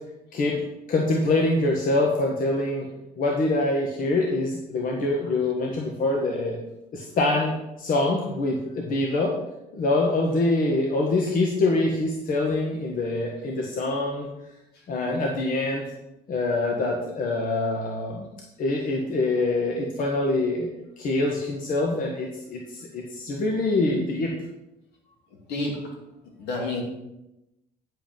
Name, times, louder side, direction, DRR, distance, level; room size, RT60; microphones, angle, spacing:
voice 1, 0.9-2.9 3.2-6.6 6.9-9.3 9.7-14.3 14.9-15.8 16.3-18.3 18.6-20.7 21.0-24.3, left 2 dB, 55° left, 0 dB, 1.5 m, -25 dB
voice 2, 25.5-25.9 26.4-26.8, left 2 dB, 75° left, -1 dB, 2.9 m, -29 dB
9.7 x 5.3 x 5.4 m, 0.91 s
cardioid pair, 110°, 17 cm